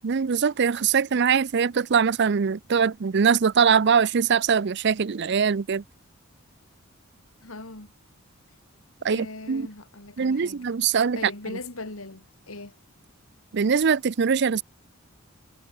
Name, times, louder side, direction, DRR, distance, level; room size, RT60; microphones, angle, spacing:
voice 1, 0.0-5.8 9.0-9.7 10.2-11.2 13.5-14.6, right 6 dB, 55° right, 0.5 m, -22 dB
voice 2, 7.4-7.9 9.0-12.8, left 2 dB, 80° left, 2.9 m, -40 dB
head